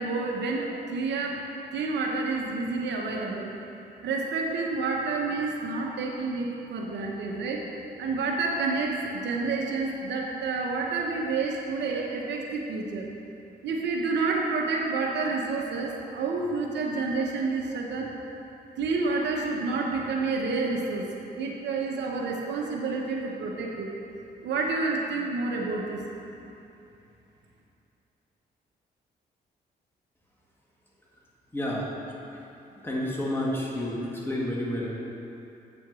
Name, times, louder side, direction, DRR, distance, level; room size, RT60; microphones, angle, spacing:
voice 1, 0.0-1.4 1.7-3.5 4.0-7.6 8.0-13.1 13.6-18.1 18.8-21.1 21.3-23.9 24.4-26.0, right 3 dB, 80° right, 0 dB, 1.0 m, -29 dB
voice 2, 31.5-31.9 32.8-34.9, left 1 dB, 10° left, -5 dB, 1.9 m, -30 dB
8.6 x 4.5 x 6.2 m, 2.8 s
cardioid pair, 70°, 18 cm